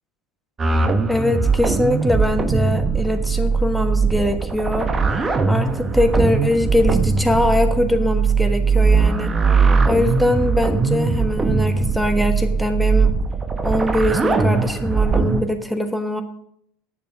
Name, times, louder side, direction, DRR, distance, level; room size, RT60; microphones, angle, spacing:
sound 1, 0.6-15.4, right 4 dB, 25° right, 1.1 m, -20 dB
voice 1, 1.1-4.9 5.5-9.3 9.8-13.1 13.6-16.2, left 1 dB, ahead, 5 dB, 1.3 m, -22 dB
9.8 x 6.7 x 5.9 m, 0.70 s
figure-of-eight pair, 75°, 0 cm